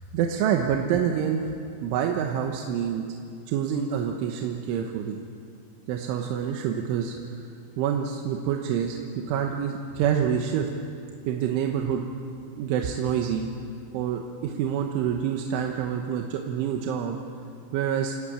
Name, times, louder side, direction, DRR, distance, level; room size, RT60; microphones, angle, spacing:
voice 1, 0.1-1.4 1.8-3.1 3.5-5.2 5.9-7.5 7.8-9.0 9.3-10.7 11.3-12.0 12.6-13.5 13.9-17.2 17.7-18.1, right 8 dB, 85° right, 2 dB, 3.6 m, -27 dB
30.0 x 16.0 x 8.8 m, 2.4 s
omnidirectional pair, 5.5 m